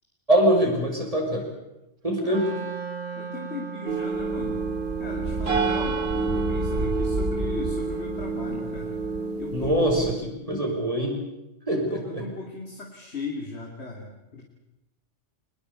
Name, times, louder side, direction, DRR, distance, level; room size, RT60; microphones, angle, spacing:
voice 1, 0.3-1.5 2.0-2.5 9.5-11.2 11.7-12.2, right 1 dB, 30° right, 0 dB, 5.7 m, -23 dB
Wind instrument woodwind instrument, 2.3-9.4, right 8 dB, 90° right, 2.6 m, -38 dB
voice 2, 3.1-4.6 5.0-9.0 9.4-10.2 10.6-10.9 11.7-14.4, left 3 dB, 60° left, 0 dB, 3.3 m, -38 dB
sound 1, 3.9-10.1, right 3 dB, 55° right, 2.7 m, -28 dB
24.0 x 20.5 x 8.4 m, 0.92 s
omnidirectional pair, 1.2 m